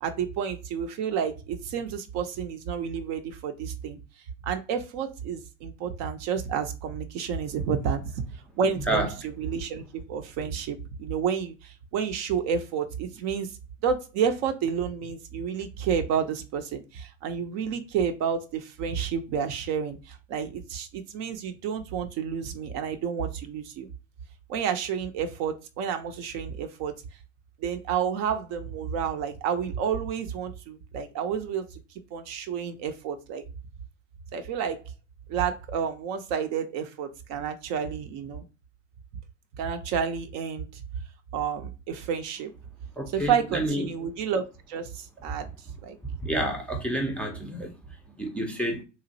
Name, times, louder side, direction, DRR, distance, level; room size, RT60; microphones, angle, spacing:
voice 1, 0.0-4.0 4.4-8.2 8.6-13.5 13.8-23.9 24.5-26.9 27.6-31.8 32.1-33.4 34.3-34.8 35.3-38.5 39.6-40.8 41.3-42.5 43.1-45.5 45.8-46.0, right 7 dB, 45° right, 0.5 m, -30 dB
voice 2, 43.0-43.9 46.0-48.8, right 1 dB, 5° left, 0.5 m, -29 dB
2.9 x 2.4 x 2.6 m
hypercardioid pair, 85°, 38 cm